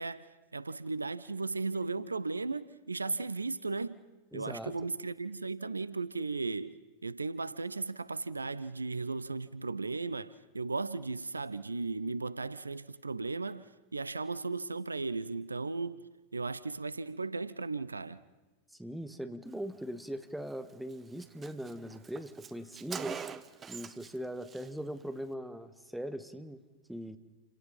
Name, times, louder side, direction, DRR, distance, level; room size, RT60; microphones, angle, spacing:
voice 1, 0.0-4.0 4.3-16.1 16.3-18.2, right 3 dB, 80° right, 0.7 m, -36 dB
voice 2, 4.3-4.7 18.7-23.2 23.7-26.6 26.9-27.2, equal, ahead, 1.5 m, -40 dB
Car, 20.5-20.6 20.9-21.0 21.2-24.2 24.4-24.7, right 6 dB, 20° right, 1.0 m, -43 dB
29.0 x 18.0 x 5.4 m
figure-of-eight pair, 90°, 0 cm